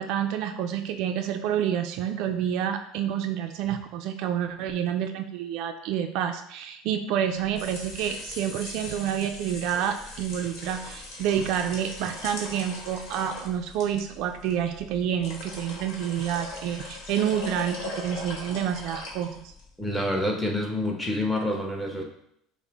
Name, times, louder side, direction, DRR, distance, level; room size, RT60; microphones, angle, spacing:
voice 1, 0.0-19.4, right 9 dB, 60° right, 6 dB, 0.3 m, -28 dB
sound 1, 7.3-19.7, left 2 dB, 65° left, 1.3 m, -40 dB
voice 2, 19.8-22.0, left 1 dB, 5° left, 0 dB, 0.8 m, -27 dB
5.4 x 2.0 x 3.4 m, 0.74 s
supercardioid pair, 120°, 0 cm